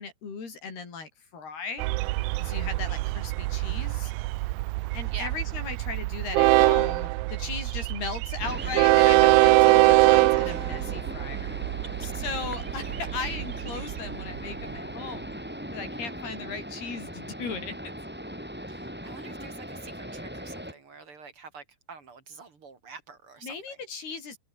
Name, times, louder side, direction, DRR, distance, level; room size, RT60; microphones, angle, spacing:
voice 1, 0.0-1.9 2.4-4.1 4.9-11.6 12.0-15.4 15.7-17.8 23.4-24.4, left 5 dB, 75° left, 7.9 m, -37 dB
Train, 1.8-14.8, right 21 dB, 85° right, 2.1 m, -23 dB
sound 1, 8.4-20.7, equal, ahead, 5.6 m, -39 dB
voice 2, 10.4-10.7 18.7-23.8, right 5 dB, 35° right, 3.2 m, -46 dB
open air
omnidirectional pair, 4.6 m